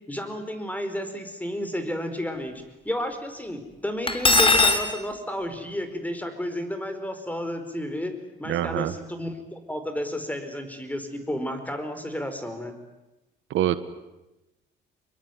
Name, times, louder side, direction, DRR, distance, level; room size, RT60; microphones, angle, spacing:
voice 1, 0.1-12.8, left 1 dB, 10° left, 8 dB, 5.0 m, -32 dB
Cutlery silverware, 4.1-4.8, left 3 dB, 25° left, 3.2 m, -18 dB
voice 2, 8.5-8.9 13.5-13.8, right 12 dB, 80° right, 13 dB, 1.5 m, -24 dB
26.0 x 22.5 x 9.6 m, 0.98 s
cardioid pair, 90°, 20 cm